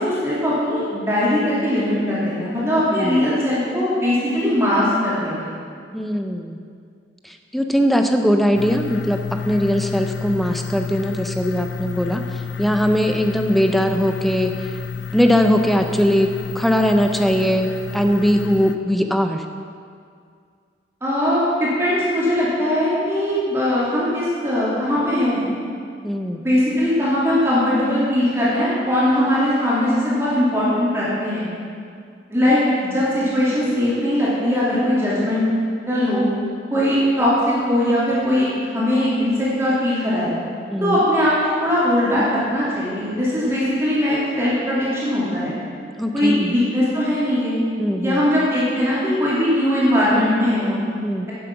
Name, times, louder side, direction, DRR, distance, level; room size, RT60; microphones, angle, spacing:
voice 1, 0.0-5.6 21.0-25.4 26.3-31.5 32.3-35.4 35.9-36.3 36.7-38.5 38.7-40.3 40.8-45.6 46.1-47.6 48.0-50.8, left 1 dB, 15° right, -10 dB, 2.6 m, -20 dB
voice 2, 2.9-3.2 5.9-6.6 7.2-9.2 9.5-14.7 15.1-19.4 26.0-26.4 40.7-41.0 46.0-46.5 47.8-48.2 51.0-51.3, equal, ahead, 5 dB, 0.5 m, -20 dB
sound 1, 8.5-18.8, left 6 dB, 85° left, 0.5 m, -31 dB
10.0 x 7.4 x 5.8 m, 2.2 s
head